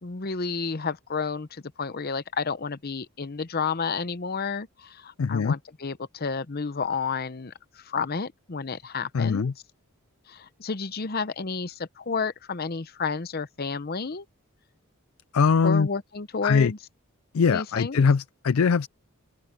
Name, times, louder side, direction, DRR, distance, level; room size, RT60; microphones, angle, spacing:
voice 1, 0.0-9.5 10.3-14.3 15.6-16.8 17.5-18.0, left 5 dB, 45° left, 0.7 m, -31 dB
voice 2, 5.2-5.5 9.1-9.5 15.3-15.9 16.4-16.7 17.3-18.9, left 5 dB, 70° left, 0.4 m, -21 dB
open air
head